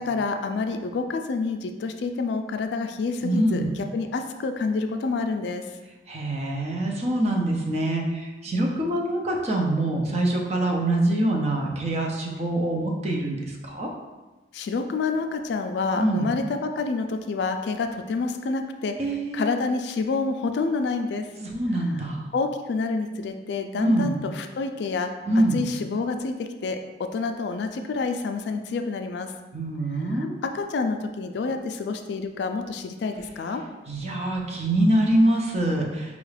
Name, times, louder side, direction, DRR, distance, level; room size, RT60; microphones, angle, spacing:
voice 1, 0.0-5.6 14.5-18.9 19.3-21.3 21.9-22.0 22.3-25.1 25.3-29.3 30.1-33.6, left 4 dB, 65° left, 6 dB, 0.3 m, -28 dB
voice 2, 3.2-3.8 6.1-13.9 16.0-16.3 19.0-19.5 21.4-22.2 23.8-24.2 25.3-25.6 29.5-30.3 33.9-36.2, right 1 dB, 35° right, 0 dB, 0.5 m, -24 dB
5.1 x 2.4 x 3.2 m, 1.2 s
head